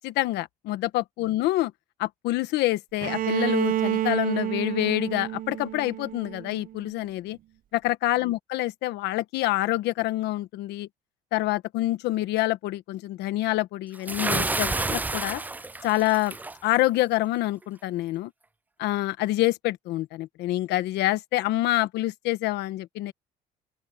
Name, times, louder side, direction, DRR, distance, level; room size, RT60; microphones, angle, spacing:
voice 1, 0.0-1.7 2.0-7.4 7.7-10.9 11.3-15.4 15.8-16.4 16.6-18.3 18.8-23.1, left 16 dB, 85° left, 1.3 m, -27 dB
Bowed string instrument, 3.0-6.9, right 12 dB, 55° right, 1.0 m, -29 dB
Bathtub (filling or washing) / Splash splatter, 14.1-16.6, right 2 dB, 10° right, 0.4 m, -29 dB
open air
cardioid pair, 110°, 17 cm